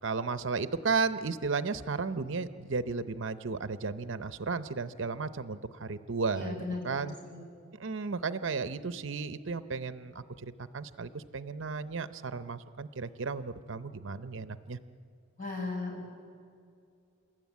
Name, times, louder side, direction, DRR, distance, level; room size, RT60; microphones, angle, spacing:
voice 1, 0.0-6.6 6.8-7.1 7.8-14.8, right 4 dB, 65° right, 12 dB, 0.7 m, -34 dB
voice 2, 6.3-7.4 15.4-16.1, left 3 dB, 40° left, -1 dB, 6.4 m, -37 dB
29.0 x 13.5 x 9.4 m, 2.4 s
head